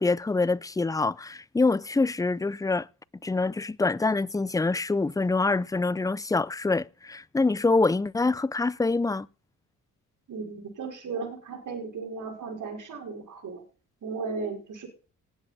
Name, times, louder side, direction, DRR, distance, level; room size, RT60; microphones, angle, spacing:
voice 1, 0.0-2.9 3.2-9.3, left 3 dB, 10° left, 0.5 m, -25 dB
voice 2, 10.3-13.6 14.0-14.9, right 4 dB, 65° right, 4.8 m, -35 dB
19.0 x 7.8 x 4.2 m
cardioid pair, 65°, 33 cm